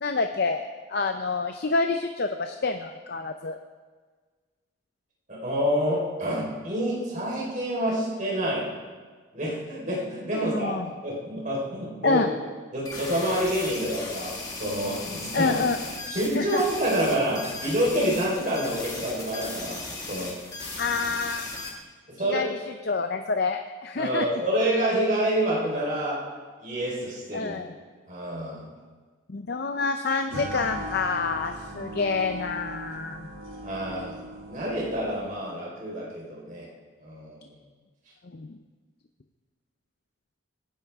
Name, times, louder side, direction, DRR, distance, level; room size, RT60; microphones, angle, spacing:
voice 1, 0.0-3.6 10.3-10.9 12.0-12.3 15.3-15.8 16.3-16.6 20.8-21.8 22.2-24.2 27.3-27.7 29.3-33.3 38.3-38.6, left 4 dB, 50° left, 6 dB, 0.6 m, -28 dB
voice 2, 5.3-8.7 9.3-12.3 12.7-15.6 16.1-19.8 20.1-20.4 22.1-22.5 24.0-26.2 26.6-27.5 28.1-28.7 33.6-34.2 34.5-36.7 37.0-37.5, equal, 40° right, -4 dB, 4.2 m, -28 dB
sound 1, 12.9-21.7, left 3 dB, 20° left, 2.1 m, -37 dB
sound 2, 30.3-35.4, equal, 80° right, 2.0 m, -39 dB
25.0 x 10.5 x 3.6 m, 1.5 s
head